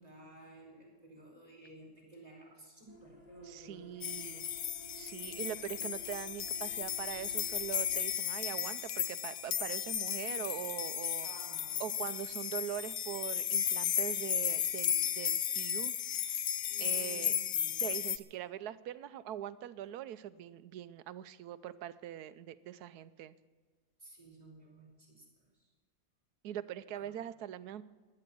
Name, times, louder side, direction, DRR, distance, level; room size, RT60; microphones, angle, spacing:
voice 1, 0.0-4.5 11.2-11.9 16.7-17.8 24.0-25.7 26.9-27.1, right 2 dB, 25° right, -3 dB, 4.9 m, -55 dB
sound 1, 2.9-8.0, left 1 dB, 25° left, 2.3 m, -54 dB
voice 2, 3.4-4.4 4.9-11.3 11.8-16.5 16.8-17.3 17.8-23.3 26.4-27.8, right 11 dB, 80° right, 15 dB, 1.2 m, -42 dB
sound 2, 4.0-18.2, left 9 dB, 60° left, 0.9 m, -34 dB
15.5 x 10.5 x 7.7 m, 1.4 s
omnidirectional pair, 1.6 m